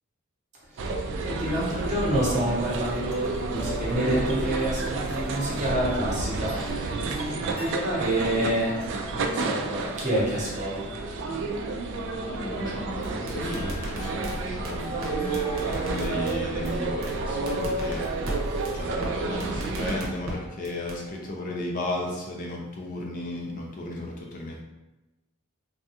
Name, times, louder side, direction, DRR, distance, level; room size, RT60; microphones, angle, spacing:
voice 1, 0.7-6.6 7.0-8.8 9.1-11.0, right 1 dB, 35° right, -5 dB, 0.8 m, -28 dB
sound 1, 0.8-20.0, right 3 dB, 55° right, 0.3 m, -31 dB
sound 2, 2.7-21.6, left 2 dB, 85° left, 1.2 m, -44 dB
voice 2, 12.3-18.3 18.7-24.6, left 2 dB, 40° left, -1 dB, 0.4 m, -34 dB
sound 3, 13.0-14.3 14.6-14.7 15.0-15.1 15.3-16.3 16.6-16.7 17.0-17.1 17.5-18.3 18.6-18.7 19.0-19.1 19.4-20.3 20.6-21.0, right 1 dB, 75° right, 0.7 m, -36 dB
3.3 x 2.3 x 2.7 m, 1.0 s
head